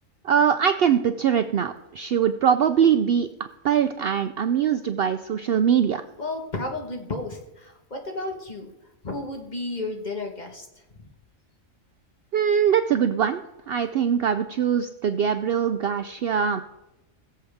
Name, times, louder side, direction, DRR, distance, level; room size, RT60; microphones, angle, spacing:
voice 1, 0.2-6.0 12.3-16.6, right 8 dB, 65° right, 9 dB, 0.6 m, -22 dB
voice 2, 6.2-8.7 9.0-10.7, left 2 dB, 35° left, 2 dB, 1.5 m, -32 dB
21.0 x 7.5 x 3.5 m, 0.93 s
omnidirectional pair, 1.4 m